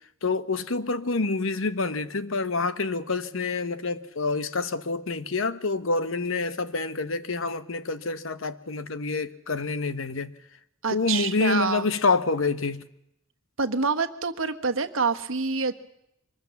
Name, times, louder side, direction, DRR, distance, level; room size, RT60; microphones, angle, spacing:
voice 1, 0.2-10.3 10.9-12.8, left 3 dB, 70° left, 1.1 m, -27 dB
voice 2, 10.8-11.9 13.6-15.7, right 4 dB, 70° right, 1.4 m, -26 dB
24.0 x 20.0 x 7.1 m
head